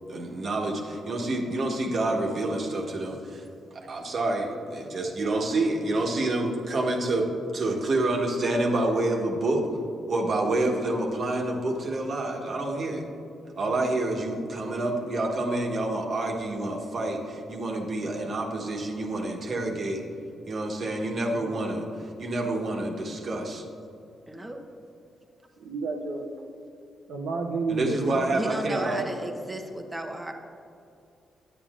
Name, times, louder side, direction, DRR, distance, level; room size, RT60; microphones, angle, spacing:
voice 1, 0.1-3.4 3.7-9.7 10.1-13.0 13.5-20.0 20.5-21.9 22.2-23.6 27.7-29.0, right 2 dB, 55° right, 1 dB, 1.2 m, -28 dB
voice 2, 24.3-24.6 28.3-30.3, right 1 dB, 15° right, 3 dB, 0.8 m, -34 dB
voice 3, 25.6-26.3 27.1-28.2, right 3 dB, 85° right, 0 dB, 0.7 m, -31 dB
9.1 x 8.7 x 2.5 m, 2.6 s
cardioid pair, 65°, 0 cm